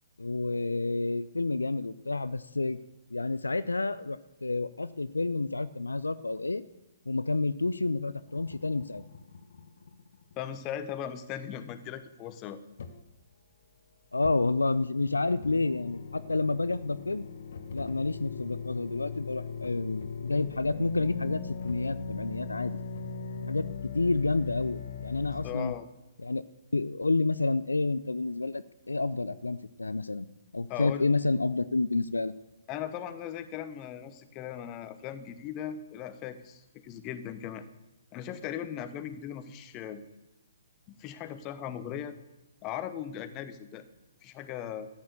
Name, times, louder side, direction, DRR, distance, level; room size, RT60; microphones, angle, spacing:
voice 1, 0.2-2.8 3.1-6.6 7.1-9.0 14.1-17.2 17.7-22.8 23.4-25.7 26.2-26.4 26.7-30.3 30.5-32.3, left 3 dB, 80° left, 15 dB, 0.5 m, -29 dB
sound 1, 8.3-10.3 12.8-13.0 14.2-14.3 14.7-25.5, left 5 dB, 55° left, 1.2 m, -39 dB
voice 2, 10.3-12.6 25.4-25.9 30.7-31.1 32.7-37.6 38.1-40.0 40.9-42.1 42.6-43.9 44.2-44.9, left 10 dB, 25° left, 11 dB, 1.1 m, -38 dB
13.5 x 9.4 x 6.8 m, 1.0 s
figure-of-eight pair, 125°, 0 cm